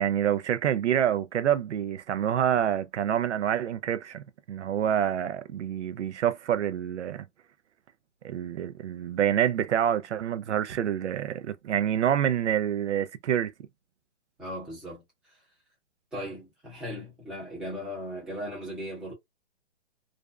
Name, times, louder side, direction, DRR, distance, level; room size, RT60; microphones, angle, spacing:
voice 1, 0.0-7.3 8.2-13.5, right 10 dB, 80° right, 0.6 m, -27 dB
voice 2, 14.4-15.4 16.1-19.1, equal, ahead, 0.8 m, -38 dB
2.5 x 2.1 x 2.3 m
hypercardioid pair, 160°, 34 cm